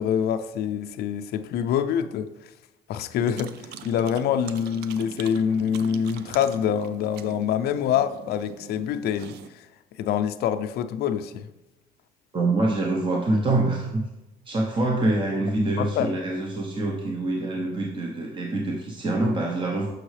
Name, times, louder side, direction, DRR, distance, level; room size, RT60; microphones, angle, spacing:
voice 1, 0.0-2.5 2.9-9.7 10.0-11.5 15.8-16.1, left 8 dB, 70° left, 0.4 m, -26 dB
sound 1, 3.2-9.5, right 8 dB, 75° right, 0.5 m, -42 dB
voice 2, 12.3-14.0 14.5-19.9, right 2 dB, 30° right, 0.8 m, -25 dB
6.4 x 6.1 x 3.2 m
cardioid pair, 110°, 17 cm